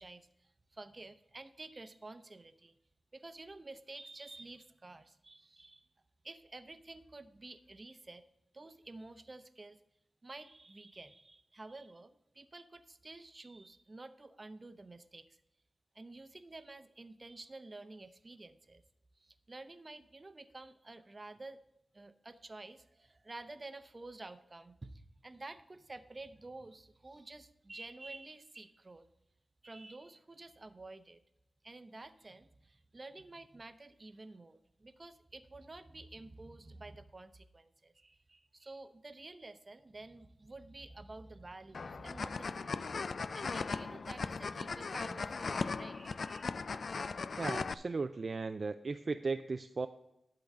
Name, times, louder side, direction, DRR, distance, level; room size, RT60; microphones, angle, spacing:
voice 1, 0.0-2.8 3.1-5.9 6.2-8.2 8.5-9.8 10.2-15.4 15.9-18.8 19.2-21.6 21.9-29.1 29.6-31.2 31.6-46.4, right 2 dB, 35° right, 11 dB, 0.7 m, -51 dB
sound 1, 41.7-47.7, left 4 dB, 65° left, 0.3 m, -38 dB
voice 2, 47.4-49.9, right 4 dB, 55° right, 8 dB, 0.4 m, -36 dB
11.5 x 3.9 x 7.2 m, 0.84 s
cardioid pair, 65°, 0 cm